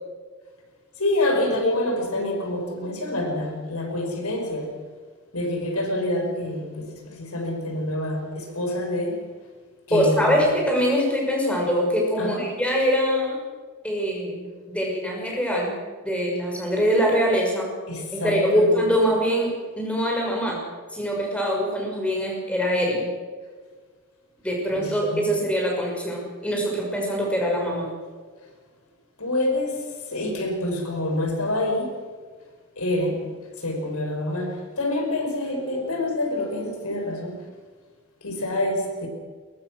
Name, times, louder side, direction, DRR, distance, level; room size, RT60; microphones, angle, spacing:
voice 1, 1.0-4.8 5.3-9.2 9.9-10.4 12.2-12.4 17.9-18.9 24.7-25.4 29.2-29.8 30.1-31.9 32.8-33.3 33.6-37.4 38.2-39.1, left 1 dB, 90° left, 3 dB, 5.5 m, -27 dB
voice 2, 9.9-13.4 13.8-15.7 16.0-17.7 18.1-19.5 19.8-20.6 20.9-23.1 24.4-27.9, equal, 5° left, -1 dB, 6.1 m, -23 dB
23.5 x 22.0 x 6.4 m, 1.5 s
head